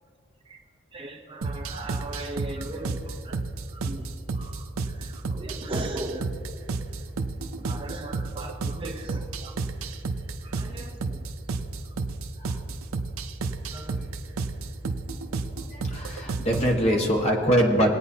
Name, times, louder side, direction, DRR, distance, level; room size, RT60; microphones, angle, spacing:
voice 1, 0.9-3.4 3.7-4.0 4.3-6.3 7.6-9.6 10.4-11.3 13.7-14.0 16.6-16.7, right 2 dB, 25° right, 3 dB, 0.6 m, -38 dB
sound 1, 1.4-16.8, right 3 dB, 75° right, 0.6 m, -32 dB
voice 2, 15.7-17.9, equal, 30° left, -1 dB, 1.4 m, -23 dB
19.0 x 9.2 x 2.8 m, 2.3 s
head